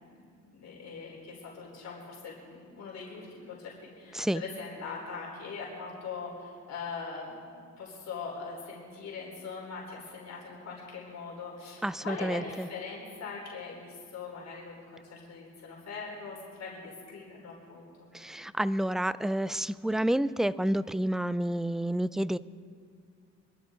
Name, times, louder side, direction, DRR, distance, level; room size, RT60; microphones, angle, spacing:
voice 1, 0.5-17.9, left 4 dB, 60° left, -3 dB, 4.3 m, -41 dB
voice 2, 11.8-12.7 18.1-22.4, right 1 dB, ahead, 16 dB, 0.4 m, -29 dB
26.0 x 12.5 x 3.9 m, 2.3 s
cardioid pair, 90°, 30 cm